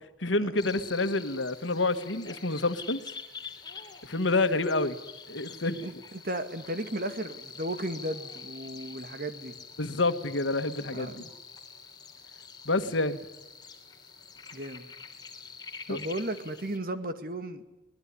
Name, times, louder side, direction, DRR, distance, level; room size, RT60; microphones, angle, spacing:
voice 1, 0.2-3.0 4.0-5.0 5.3-5.8 9.8-11.3 12.7-13.2 15.9-16.0, left 2 dB, 75° left, 9 dB, 1.7 m, -28 dB
sound 1, 0.6-16.8, left 5 dB, 20° left, 3.2 m, -46 dB
voice 2, 5.8-9.6 10.9-11.3 14.5-14.9 15.9-17.6, right 1 dB, 50° right, 9 dB, 2.0 m, -35 dB
24.5 x 20.0 x 9.9 m, 1.0 s
head